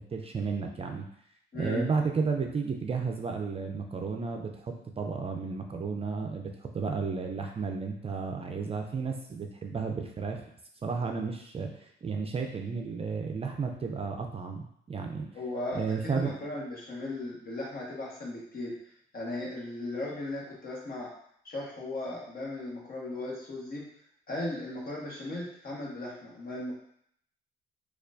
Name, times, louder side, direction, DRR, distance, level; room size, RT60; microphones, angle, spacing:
voice 1, 0.1-1.1 1.5-10.4 10.8-15.3 15.7-16.4, right 5 dB, 30° right, 2 dB, 0.4 m, -33 dB
voice 2, 1.5-1.9 15.3-18.7 19.1-21.1 21.4-23.9 24.3-26.7, left 2 dB, 50° left, -3 dB, 1.2 m, -37 dB
4.3 x 2.4 x 2.5 m, 0.68 s
cardioid pair, 90°, 20 cm